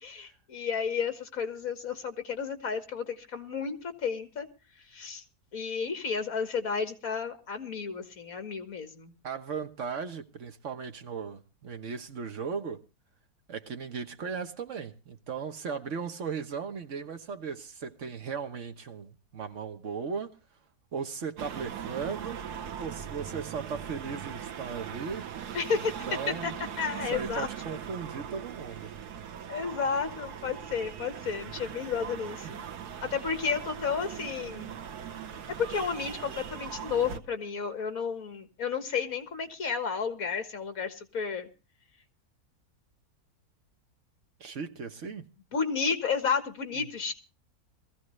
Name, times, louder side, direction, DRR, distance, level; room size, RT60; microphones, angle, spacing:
voice 1, 0.0-4.5 4.9-5.2 5.5-9.1 25.5-25.9 26.4-26.5 26.8-27.5 29.5-32.7 33.0-34.7 35.6-41.5 45.5-47.1, left 6 dB, 65° left, 2.0 m, -32 dB
voice 2, 9.2-12.8 13.5-20.4 20.9-22.4 22.8-25.3 25.7-26.6 27.1-28.9 32.4-32.5 44.4-45.2 46.8-46.9, right 6 dB, 55° right, 1.4 m, -37 dB
sound 1, 21.4-37.2, right 8 dB, 85° right, 1.5 m, -40 dB
21.0 x 15.0 x 3.2 m
omnidirectional pair, 1.6 m